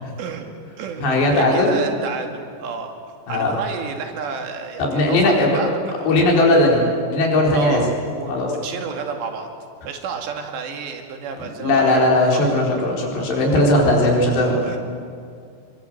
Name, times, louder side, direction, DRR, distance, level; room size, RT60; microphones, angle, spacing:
voice 1, 0.2-0.5 0.8-3.0 3.3-6.1 7.5-9.5 9.9-12.5 13.6-13.7 14.6-14.8, right 5 dB, 80° right, 3 dB, 4.4 m, -30 dB
voice 2, 1.0-1.8 3.3-3.6 4.8-5.6 6.0-7.8 8.3-8.5 11.4-14.8, left 1 dB, 80° left, -1 dB, 6.5 m, -18 dB
27.5 x 23.0 x 7.9 m, 2.3 s
omnidirectional pair, 4.9 m